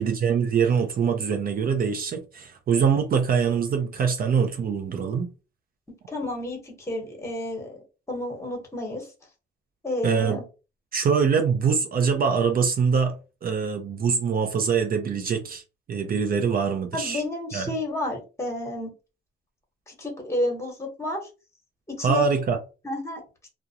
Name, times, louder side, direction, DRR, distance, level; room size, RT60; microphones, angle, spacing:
voice 1, 0.0-5.3 10.0-10.4 10.9-13.1 13.4-15.6 15.9-17.2 17.5-17.7 22.0-22.6, right 6 dB, 45° right, 0.5 m, -23 dB
voice 2, 6.1-7.8 8.1-9.1 9.8-10.4 16.9-18.9 19.9-21.2 21.9-22.2 22.8-23.2, left 1 dB, 15° left, 1.1 m, -30 dB
2.4 x 2.1 x 2.8 m
cardioid pair, 90°, 20 cm